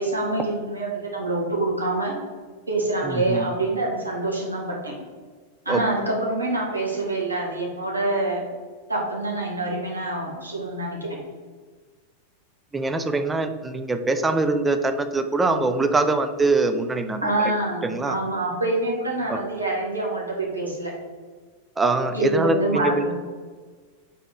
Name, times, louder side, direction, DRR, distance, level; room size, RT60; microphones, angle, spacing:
voice 1, 0.0-2.2 2.7-5.0 5.6-8.4 8.9-11.2 17.2-20.9 22.1-23.1, right 2 dB, 80° right, -2 dB, 1.1 m, -26 dB
voice 2, 3.0-3.5 5.7-5.8 12.7-17.2 17.8-18.2 19.3-19.4 21.8-23.1, right 3 dB, 10° right, 8 dB, 0.4 m, -23 dB
4.0 x 3.4 x 3.9 m, 1.4 s
figure-of-eight pair, 90°, 0 cm